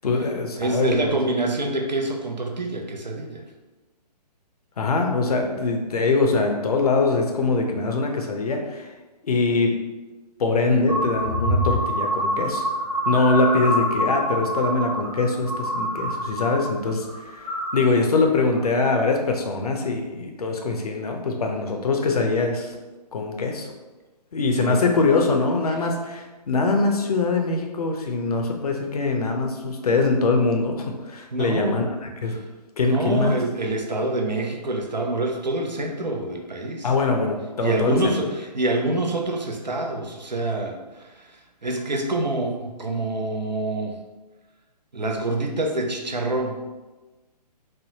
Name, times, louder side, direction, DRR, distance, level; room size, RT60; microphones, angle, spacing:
voice 1, 0.0-1.2 4.8-8.9 9.2-9.7 10.4-12.7 13.1-22.7 23.1-23.7 24.3-32.4 32.8-33.4 36.8-38.2, left 3 dB, 60° left, 3 dB, 0.6 m, -23 dB
voice 2, 0.6-3.4 24.6-24.8 31.3-31.8 32.3-32.4 32.9-36.9 37.6-44.0 44.9-46.6, right 2 dB, 90° right, 2 dB, 0.5 m, -26 dB
sound 1, 10.9-16.7 17.0-17.8 18.3-18.6, equal, ahead, 0.4 m, -26 dB
3.4 x 2.0 x 2.7 m, 1.2 s
figure-of-eight pair, 130°, 21 cm